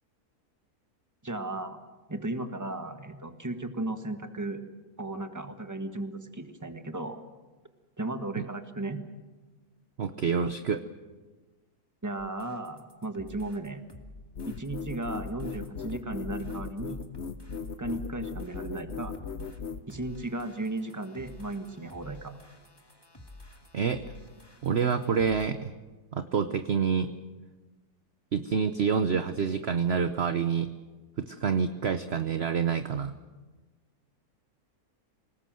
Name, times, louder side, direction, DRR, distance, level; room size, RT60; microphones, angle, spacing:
voice 1, 1.2-1.8 2.1-4.6 5.0-7.2 8.0-9.0 12.0-13.8 14.4-17.0 17.8-19.1 19.9-22.3, right 2 dB, 10° right, 7 dB, 1.4 m, -35 dB
voice 2, 10.0-10.8 23.7-24.0 24.6-25.7 26.1-27.1 28.3-30.7 31.2-33.1, right 6 dB, 50° right, 10 dB, 1.0 m, -27 dB
sound 1, 12.2-25.5, left 2 dB, 15° left, 2.0 m, -51 dB
sound 2, 14.4-19.8, left 5 dB, 45° left, 1.1 m, -37 dB
27.0 x 19.0 x 7.7 m, 1.3 s
omnidirectional pair, 1.7 m